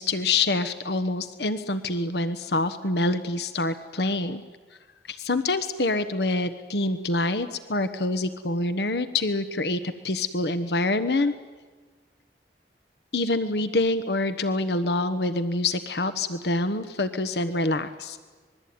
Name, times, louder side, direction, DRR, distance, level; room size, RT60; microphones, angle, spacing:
voice 1, 0.0-4.4 5.1-11.3 13.1-18.2, left 2 dB, 65° left, 11 dB, 1.2 m, -26 dB
26.0 x 21.5 x 9.5 m, 1.4 s
head